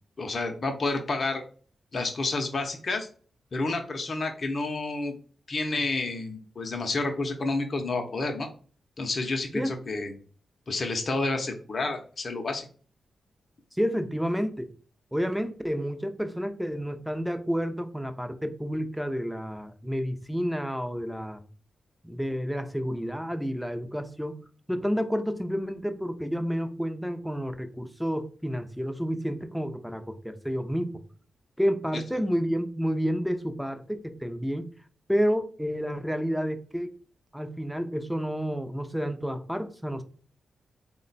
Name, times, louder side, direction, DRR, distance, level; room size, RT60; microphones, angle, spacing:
voice 1, 0.2-1.4 1.9-3.1 3.5-5.1 5.5-8.5 9.0-10.1 10.7-12.7, left 3 dB, 50° left, 3 dB, 0.7 m, -29 dB
voice 2, 13.7-14.7 15.1-21.4 22.0-31.0 31.6-34.7 35.1-36.9 37.3-40.0, equal, ahead, 8 dB, 0.6 m, -30 dB
3.6 x 2.2 x 3.9 m, 0.41 s
cardioid pair, 65°, 0 cm